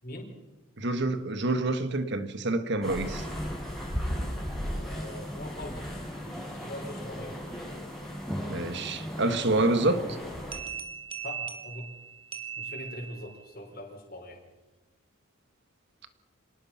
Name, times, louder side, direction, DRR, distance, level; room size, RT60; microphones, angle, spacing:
voice 1, 0.8-3.3 4.2-4.3 8.5-10.0, right 2 dB, 55° right, 1.7 m, -27 dB
sound 1, 2.8-10.6, equal, ahead, 6.5 m, -36 dB
voice 2, 4.8-6.1 6.5-7.4 11.2-11.9 12.6-14.4, left 1 dB, 45° left, 4.7 m, -42 dB
sound 2, 10.5-13.5, right 7 dB, 25° right, 1.9 m, -39 dB
26.5 x 19.0 x 5.9 m
head